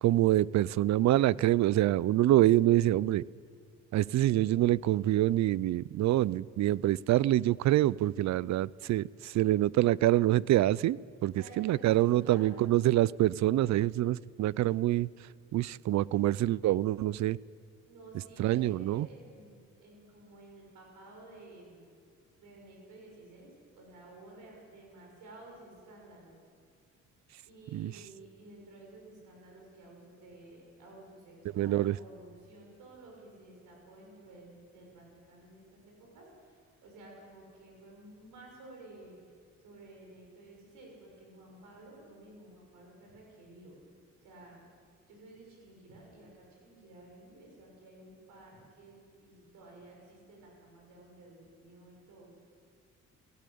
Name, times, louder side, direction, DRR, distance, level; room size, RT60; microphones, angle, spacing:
voice 1, 0.0-3.2 3.9-15.1 15.5-17.4 18.4-19.1 27.7-27.9 31.6-32.0, right 14 dB, 65° right, 22 dB, 0.5 m, -26 dB
voice 2, 11.4-11.8 12.1-13.1 17.8-21.9 22.4-26.4 27.5-39.2 39.6-43.7 44.2-44.7 45.1-52.5, right 2 dB, 90° right, 0 dB, 7.0 m, -53 dB
19.0 x 17.5 x 8.6 m, 2.3 s
cardioid pair, 90°, 30 cm